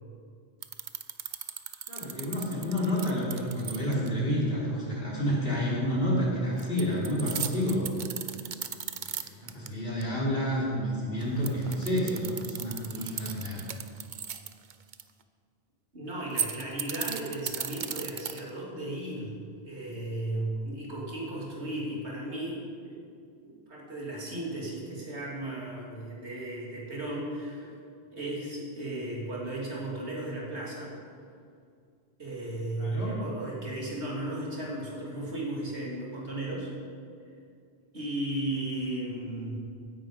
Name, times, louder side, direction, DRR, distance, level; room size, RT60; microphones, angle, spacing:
sound 1, 0.6-4.1 6.6-9.7 10.0-10.1 11.2-15.0 16.2-18.6, right 8 dB, 50° right, 0.7 m, -36 dB
voice 1, 1.9-7.9 9.0-13.6 32.8-33.2, equal, 55° left, -6 dB, 3.6 m, -29 dB
voice 2, 15.9-23.0 23.4-27.7 28.1-30.9 32.2-36.7 37.9-39.6, right 1 dB, 75° right, -4 dB, 3.3 m, -35 dB
16.5 x 10.5 x 5.1 m, 2.3 s
omnidirectional pair, 1.2 m